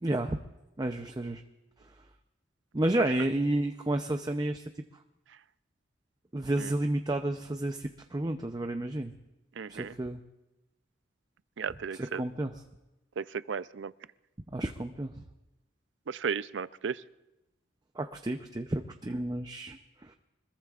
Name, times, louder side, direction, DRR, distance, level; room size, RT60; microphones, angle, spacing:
voice 1, 0.0-0.4 0.8-1.4 2.7-4.6 6.3-9.1 9.7-10.2 12.0-12.6 14.5-15.1 17.9-20.1, right 1 dB, 20° right, 6 dB, 0.6 m, -31 dB
voice 2, 9.6-9.9 11.6-12.2 13.2-13.9 16.1-17.0, right 6 dB, 80° right, 16 dB, 0.5 m, -34 dB
25.0 x 21.0 x 2.5 m, 1.0 s
head